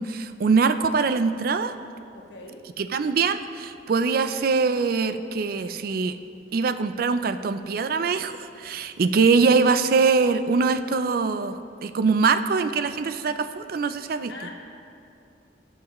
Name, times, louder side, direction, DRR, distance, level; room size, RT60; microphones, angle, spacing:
voice 1, 0.0-1.7 2.8-6.2 6.5-14.3, right 4 dB, 55° right, 11 dB, 0.4 m, -23 dB
voice 2, 2.1-2.7 14.3-14.5, left 3 dB, 80° left, 1 dB, 1.3 m, -41 dB
17.0 x 7.2 x 3.1 m, 2.5 s
head